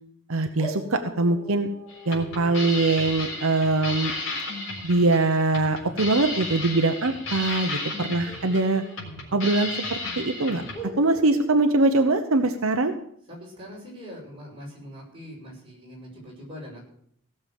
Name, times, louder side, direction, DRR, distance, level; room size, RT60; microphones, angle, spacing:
voice 1, 0.3-1.7 2.1-4.1 4.8-8.8 9.3-10.6 11.0-12.9, right 2 dB, 80° right, 6 dB, 0.9 m, -22 dB
sound 1, 0.6-6.0 8.2-9.7 10.0-10.1 10.7-12.9, equal, 15° left, 2.7 m, -43 dB
sound 2, 1.9-10.8, left 2 dB, 65° left, 4.0 m, -34 dB
voice 2, 13.3-16.8, equal, 25° right, -3 dB, 6.1 m, -42 dB
16.5 x 6.9 x 7.7 m, 0.66 s
head